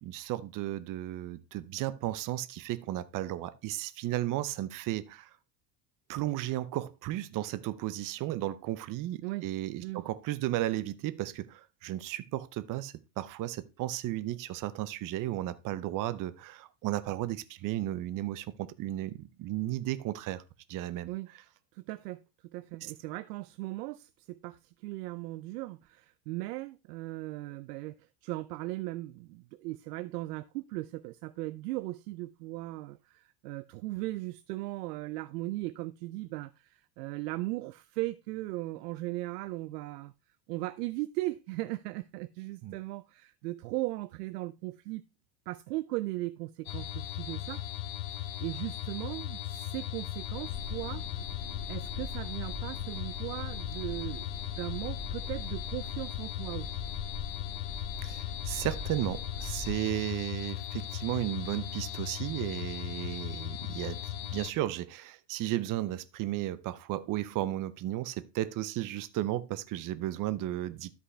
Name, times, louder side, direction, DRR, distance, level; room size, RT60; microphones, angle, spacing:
voice 1, 0.0-5.3 6.1-20.4 20.7-21.1 22.8-22.9 42.6-42.7 58.0-70.9, right 14 dB, 40° right, 0.8 m, -34 dB
voice 2, 21.7-40.1 40.5-45.0 45.5-47.6 48.4-51.0 51.7-54.3 54.6-56.8, right 19 dB, 75° right, 0.6 m, -38 dB
sound 1, 46.7-64.5, left 13 dB, 75° left, 1.1 m, -38 dB
sound 2, 50.0-59.7, left 2 dB, 20° left, 3.0 m, -43 dB
12.5 x 5.5 x 3.3 m
supercardioid pair, 105°, 48 cm